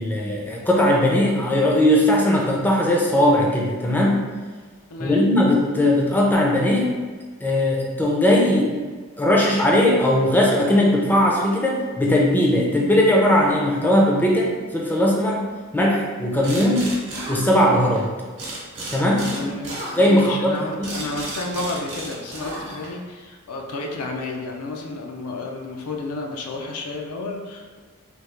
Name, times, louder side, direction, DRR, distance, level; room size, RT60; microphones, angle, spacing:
voice 1, 0.0-4.3 5.0-6.9 7.4-8.7 9.2-17.0 17.3-18.1 18.9-19.4 20.0-21.0, left 1 dB, 10° left, -2 dB, 0.4 m, -19 dB
voice 2, 4.9-5.3 19.3-27.8, left 2 dB, 75° left, 1 dB, 0.5 m, -31 dB
sound 1, 16.4-18.0 18.4-23.1, right 1 dB, 55° right, 0.9 m, -34 dB
3.4 x 2.3 x 3.1 m, 1.5 s
head